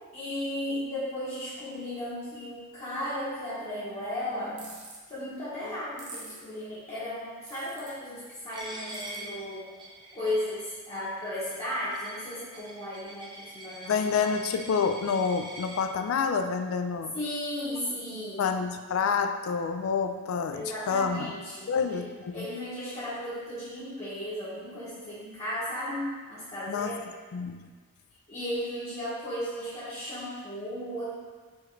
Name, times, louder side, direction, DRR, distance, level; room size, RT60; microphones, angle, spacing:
voice 1, 0.1-4.8 5.1-9.7 10.1-14.1 17.1-18.6 20.5-22.0 22.3-27.0 28.3-31.1, left 1 dB, 30° left, -12 dB, 1.0 m, -35 dB
sound 1, 4.6-5.0 6.0-6.4 7.5-7.9 8.9-9.2, right 3 dB, 50° right, 0.9 m, -44 dB
Coin (dropping), 8.5-15.8, right 1 dB, 20° right, 0.6 m, -44 dB
voice 2, 13.9-17.1 18.4-21.3 21.7-22.5 26.7-26.9 27.3-27.6, left 6 dB, 70° left, 7 dB, 0.3 m, -28 dB
4.5 x 3.1 x 3.2 m, 1.5 s
head